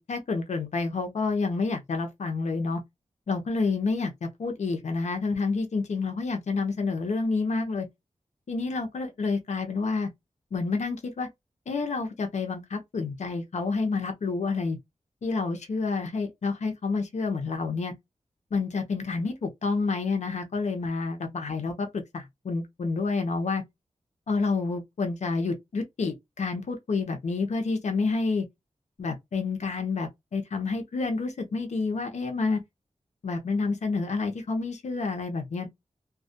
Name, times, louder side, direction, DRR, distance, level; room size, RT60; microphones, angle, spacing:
voice 1, 0.0-2.8 3.3-7.9 8.5-10.1 10.5-11.3 11.7-14.8 15.2-17.9 18.5-23.6 24.3-28.4 29.0-32.6 33.2-35.7, left 4 dB, 70° left, 0.6 m, -29 dB
2.2 x 2.1 x 2.6 m
wide cardioid pair, 75°, 12 cm